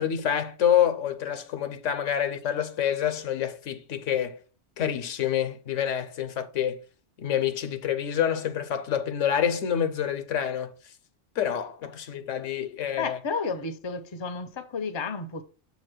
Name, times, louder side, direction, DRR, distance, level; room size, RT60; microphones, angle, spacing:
voice 1, 0.0-4.4 4.8-6.8 7.2-10.7 11.4-13.2, left 9 dB, 80° left, 1.1 m, -27 dB
voice 2, 13.0-15.4, left 4 dB, 30° left, 0.6 m, -32 dB
7.2 x 3.0 x 6.0 m
omnidirectional pair, 1.3 m